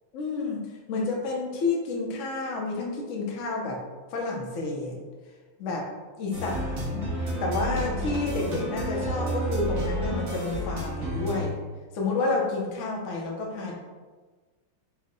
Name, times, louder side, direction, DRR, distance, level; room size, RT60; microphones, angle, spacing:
voice 1, 0.1-3.8 4.1-5.0 5.6-5.9 6.2-7.1 7.4-11.6 11.9-13.7, left 3 dB, 70° left, -1 dB, 0.7 m, -30 dB
sound 1, 6.3-11.5, equal, 55° right, 1.0 m, -30 dB
4.4 x 2.1 x 3.9 m, 1.3 s
omnidirectional pair, 2.3 m